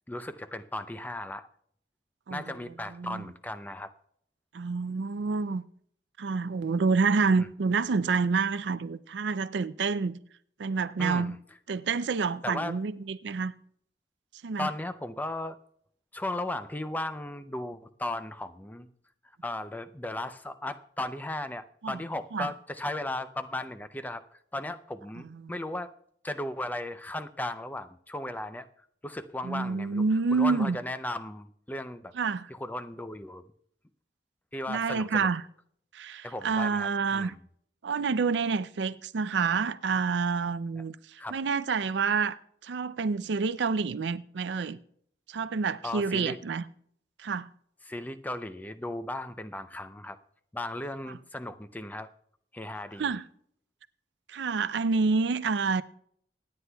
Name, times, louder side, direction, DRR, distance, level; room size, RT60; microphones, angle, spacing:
voice 1, 0.1-1.5 2.3-3.9 7.3-7.5 11.0-11.3 12.4-12.8 14.6-15.6 16.1-18.9 19.4-24.2 24.5-25.9 26.2-28.7 29.0-30.0 30.3-32.1 32.5-33.4 34.5-35.3 36.2-37.4 41.2-41.4 45.8-46.4 47.9-50.2 50.5-52.1 52.5-53.1, left 1 dB, 10° left, 0.5 m, -36 dB
voice 2, 2.9-3.2 4.5-5.6 6.2-10.2 10.6-11.4 11.7-13.5 14.4-14.7 21.8-22.0 22.3-22.5 25.3-25.6 29.4-30.8 32.1-32.5 34.7-35.4 35.9-37.3 37.8-42.4 42.6-44.8 45.3-46.7 47.2-47.5 51.1-51.2 53.0-53.2 54.3-55.8, right 4 dB, 75° right, 0.4 m, -28 dB
26.0 x 9.6 x 2.3 m
head